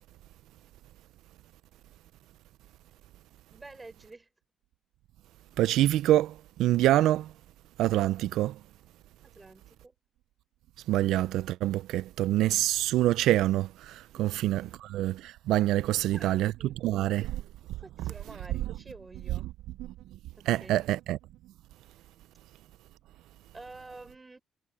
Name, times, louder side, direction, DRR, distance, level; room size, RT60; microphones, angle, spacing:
voice 1, 3.5-4.3 9.2-10.0 14.1-14.8 15.9-16.8 17.1-17.3 17.6-19.5 20.4-20.7 23.5-24.4, right 2 dB, 20° right, 5.0 m, -49 dB
voice 2, 5.6-6.3 6.6-7.3 7.8-8.5 10.9-16.5 16.8-17.4 20.5-21.2, right 14 dB, 90° right, 0.4 m, -26 dB
cardioid pair, 90°, 0 cm